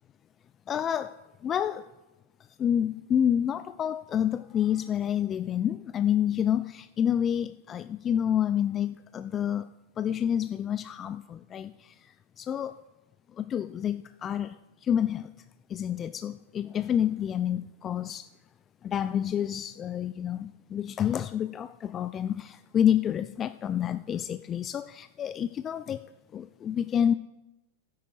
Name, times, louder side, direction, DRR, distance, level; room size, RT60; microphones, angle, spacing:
voice 1, 0.7-1.8 2.6-9.7 10.0-12.0 12.4-12.8 13.4-14.5 14.8-15.3 15.7-18.3 18.8-27.1, left 9 dB, 30° left, 12 dB, 0.3 m, -28 dB
12.0 x 9.5 x 4.6 m, 1.0 s
hypercardioid pair, 110°, 0 cm